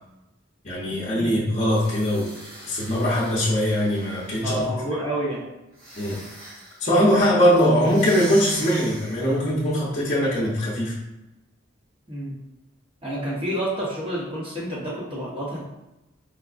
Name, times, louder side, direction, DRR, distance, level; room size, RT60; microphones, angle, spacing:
voice 1, 0.6-2.3 2.6-4.6 6.0-6.2 6.8-10.9, equal, 35° left, -7 dB, 0.7 m, -21 dB
sound 1, 1.7-4.7 5.7-6.9 7.8-9.5, right 1 dB, 45° right, 0.8 m, -41 dB
voice 2, 4.3-5.5 12.1-12.4 13.0-15.7, right 1 dB, 25° right, -5 dB, 0.9 m, -29 dB
4.7 x 2.1 x 2.5 m, 0.96 s
head